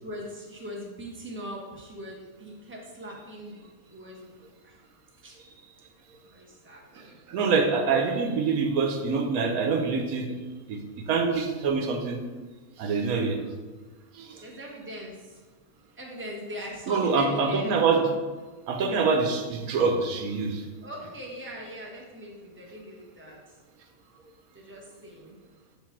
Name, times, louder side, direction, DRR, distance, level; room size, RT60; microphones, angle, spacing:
voice 1, 0.0-4.3 4.6-4.8 5.2-5.3 6.3-7.2 14.4-15.4 16.0-17.8 20.8-23.6 24.5-25.4, equal, 10° right, -3 dB, 1.0 m, -41 dB
voice 2, 7.3-10.2 10.7-10.8 11.1-12.2 12.8-13.4 14.2-14.3 16.9-18.1 18.7-20.6, right 4 dB, 85° right, 4 dB, 1.2 m, -25 dB
7.2 x 2.6 x 5.8 m, 1.3 s
omnidirectional pair, 1.5 m